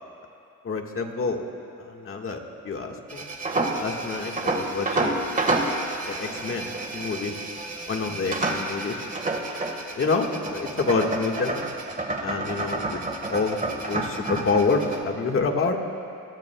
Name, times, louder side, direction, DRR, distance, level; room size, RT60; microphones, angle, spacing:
voice 1, 0.6-1.4 1.8-3.3 3.8-5.7 6.1-7.3 7.9-9.0 9.2-9.4 9.9-11.6 12.2-13.0 13.3-13.6 13.9-15.8, left 4 dB, 45° left, 2 dB, 1.7 m, -27 dB
sound 1, 3.1-15.0, right 2 dB, 25° right, 1.6 m, -29 dB
28.5 x 20.5 x 2.3 m, 2.5 s
cardioid pair, 115°, 31 cm